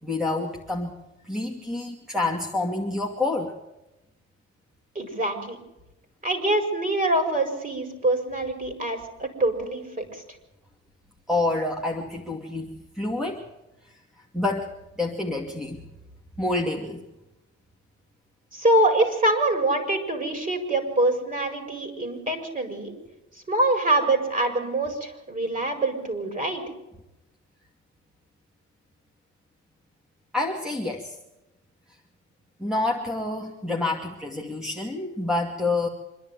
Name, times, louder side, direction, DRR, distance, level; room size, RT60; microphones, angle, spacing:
voice 1, 0.0-1.0 1.2-3.5 11.3-13.4 14.3-14.7 15.0-15.8 16.4-17.0 30.3-31.2 32.6-35.9, left 2 dB, ahead, 1 dB, 2.3 m, -28 dB
voice 2, 4.9-5.6 6.2-10.2 18.5-22.9 23.5-26.6, right 2 dB, 25° right, 6 dB, 5.0 m, -25 dB
25.5 x 11.0 x 9.3 m, 0.96 s
cardioid pair, 90°, 30 cm